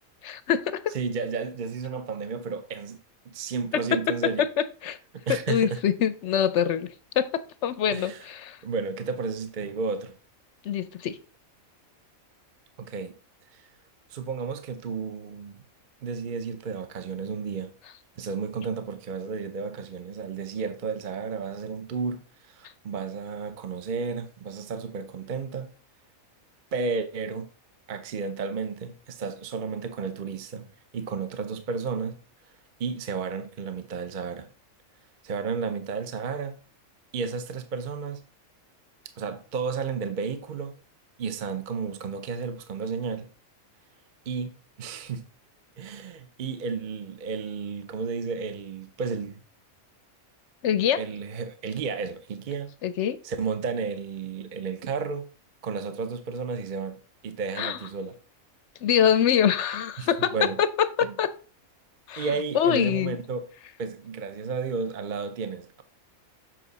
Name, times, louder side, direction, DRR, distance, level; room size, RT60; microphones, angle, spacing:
voice 1, 0.2-1.0 3.7-3.8 4.4-5.0 5.3-8.6 10.6-11.2 50.6-51.0 52.8-53.2 57.6-57.8 58.8-61.3 62.1-62.3 62.5-63.2, left 9 dB, 65° left, 0.8 m, -25 dB
voice 2, 0.9-3.0 3.3-4.4 5.3-5.8 7.9-8.3 8.6-10.1 12.8-13.1 13.5-13.7 14.1-15.6 16.0-17.7 18.2-25.7 26.7-27.5 27.9-30.7 30.9-32.2 32.8-34.5 35.2-36.6 37.1-38.2 39.2-40.7 41.2-43.3 44.3-45.3 45.8-49.4 51.0-52.7 53.2-55.3 55.6-58.2 60.0-60.6 61.0-61.1 62.2-63.5 63.8-65.8, right 5 dB, 45° right, 0.7 m, -32 dB
7.6 x 5.7 x 4.0 m
omnidirectional pair, 1.5 m